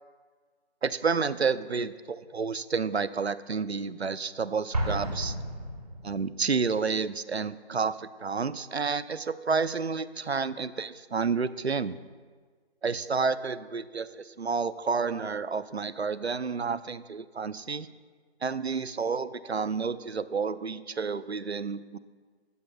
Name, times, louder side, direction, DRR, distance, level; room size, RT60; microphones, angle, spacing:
voice 1, 0.8-5.4 6.0-12.0 12.8-17.9 18.4-22.0, right 5 dB, 70° right, 15 dB, 0.7 m, -30 dB
Explosion, 4.7-6.5, right 1 dB, 35° right, 1.5 m, -32 dB
19.0 x 13.5 x 2.3 m, 1.5 s
figure-of-eight pair, 160°, 33 cm